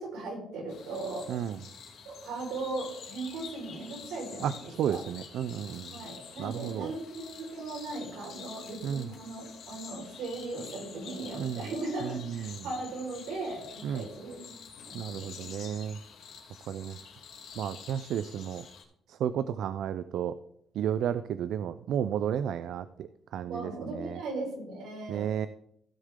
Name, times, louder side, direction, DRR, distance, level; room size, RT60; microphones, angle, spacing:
voice 1, 0.0-1.3 2.0-5.0 5.9-14.6 14.9-15.5 23.5-25.5, right 2 dB, 85° right, -1 dB, 4.6 m, -38 dB
sound 1, 0.7-18.8, left 6 dB, 80° left, 2.8 m, -48 dB
voice 2, 4.8-5.9 6.4-6.9 8.8-9.1 11.4-11.6 12.3-12.5 13.8-14.0 14.9-16.0 16.7-17.0 17.6-18.6 19.2-20.3 20.8-23.1 23.3-24.2 25.1-25.5, right 9 dB, 65° right, 13 dB, 0.4 m, -32 dB
16.0 x 6.4 x 3.7 m, 0.73 s
cardioid pair, 175°, 0 cm